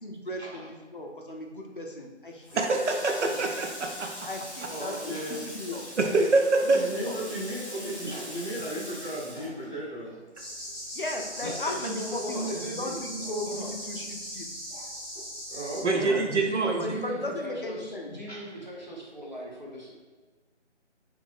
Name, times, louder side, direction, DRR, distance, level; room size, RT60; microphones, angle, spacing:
voice 1, 0.0-2.9 3.2-3.4 4.2-5.0 5.3-5.9 6.8-7.2 10.9-14.5 16.3-18.1, left 1 dB, 50° left, 2 dB, 0.5 m, -36 dB
Water tap faucet, 2.4-10.3 10.6-11.9, equal, 30° left, 0.9 m, -42 dB
voice 2, 2.6-4.1 6.0-6.9 15.8-17.0, right 3 dB, 75° right, 3 dB, 0.5 m, -25 dB
voice 3, 4.7-5.4 6.0-6.3 6.5-10.2 13.2-13.3 14.7-14.9 15.1-16.2 18.3-18.6, right 1 dB, 5° left, -19 dB, 1.5 m, -36 dB
sound 1, 10.3-15.8, equal, 20° right, 1.4 m, -39 dB
voice 4, 11.4-13.0 13.5-13.7 16.0-19.9, equal, 40° right, -4 dB, 0.8 m, -37 dB
3.6 x 3.0 x 2.6 m, 1.4 s
figure-of-eight pair, 165°, 36 cm